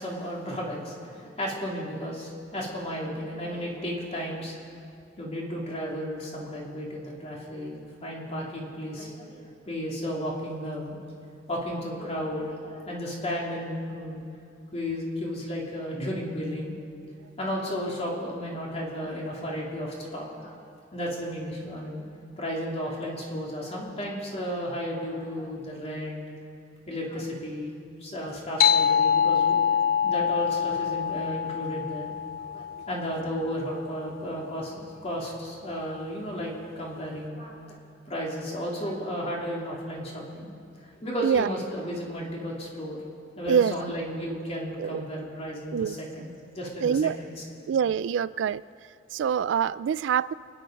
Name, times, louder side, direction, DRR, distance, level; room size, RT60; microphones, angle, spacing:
voice 1, 0.0-4.5 5.2-11.0 11.5-14.2 14.7-16.8 17.4-20.5 20.9-22.0 22.4-26.2 26.9-27.7 28.0-29.6 30.0-32.1 32.4-37.8 38.0-40.5 41.0-43.0 43.4-47.3, equal, 35° left, -3 dB, 3.1 m, -33 dB
sound 1, 28.6-33.6, left 7 dB, 55° left, 0.3 m, -25 dB
voice 2, 46.8-47.2 47.7-48.6 49.1-50.3, right 7 dB, 85° right, 18 dB, 0.3 m, -25 dB
25.0 x 10.5 x 5.2 m, 2.5 s
head